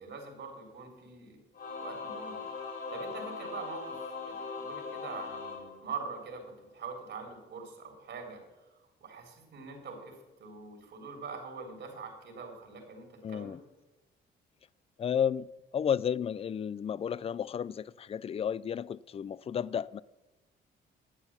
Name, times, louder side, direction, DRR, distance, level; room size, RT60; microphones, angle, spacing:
voice 1, 0.0-1.4 1.7-2.4 2.9-8.7 9.0-13.6, right 5 dB, 65° right, 3.5 m, -44 dB
Singing / Musical instrument, 1.5-6.4, left 4 dB, 55° left, 3.1 m, -40 dB
voice 2, 13.2-13.6 15.0-15.5 15.7-20.0, left 8 dB, 30° left, 0.3 m, -32 dB
11.0 x 7.9 x 7.2 m
cardioid pair, 90°, 20 cm